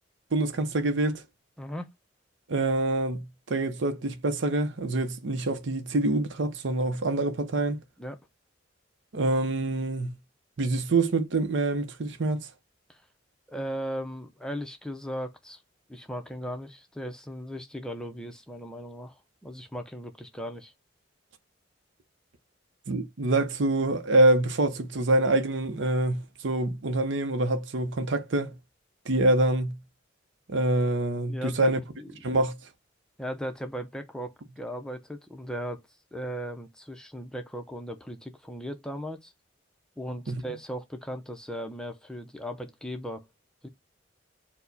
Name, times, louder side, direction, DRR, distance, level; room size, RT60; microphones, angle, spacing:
voice 1, 0.3-1.2 2.5-7.8 9.1-10.1 10.6-12.5 22.9-28.6 29.1-29.8 30.5-31.8 32.2-32.6 40.3-40.4, right 2 dB, 70° right, 0.7 m, -26 dB
voice 2, 13.5-15.6 15.9-20.7 31.3-32.4 33.2-35.8 36.1-39.3 40.0-43.3 43.6-43.7, equal, 5° left, 0.5 m, -37 dB
4.6 x 2.1 x 3.9 m
head